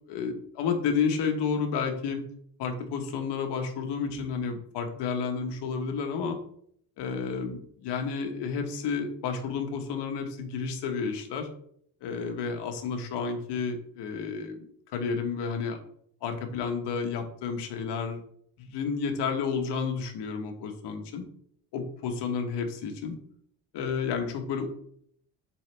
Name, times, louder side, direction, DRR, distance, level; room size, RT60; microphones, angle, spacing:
voice 1, 0.1-2.2 2.6-6.4 7.0-11.5 12.0-14.7 14.9-15.8 16.2-18.2 18.6-21.2 21.7-23.2 23.7-24.7, left 5 dB, 85° left, 4 dB, 1.3 m, -31 dB
7.7 x 3.9 x 3.3 m, 0.65 s
cardioid pair, 150°, 40 cm